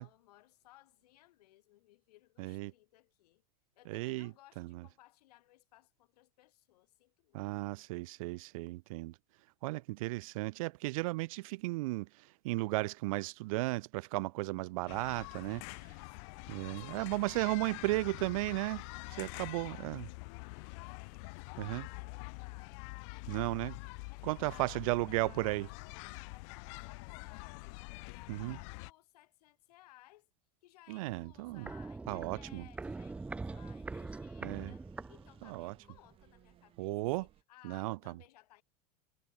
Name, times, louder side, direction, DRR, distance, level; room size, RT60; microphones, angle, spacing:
voice 1, 0.0-3.4 3.7-7.7 15.4-18.3 19.0-21.3 21.6-22.9 24.1-25.5 26.1-30.3 30.6-38.6, left 17 dB, 70° left, 5.4 m, -62 dB
voice 2, 2.4-2.7 3.9-4.8 7.3-9.1 9.6-15.6 16.5-18.8 19.2-20.0 21.6-21.9 23.3-23.8 24.2-25.7 28.3-28.6 30.9-31.7 32.1-32.7 34.4-34.7 35.4-35.7 36.8-37.3 37.6-38.1, right 22 dB, 55° right, 0.4 m, -35 dB
sound 1, 14.9-28.9, left 34 dB, 45° left, 2.1 m, -46 dB
Walk footsteps, 31.2-35.8 36.1-36.2, right 3 dB, 5° right, 1.0 m, -44 dB
sound 2, 31.6-37.4, right 13 dB, 25° right, 6.4 m, -66 dB
supercardioid pair, 175°, 21 cm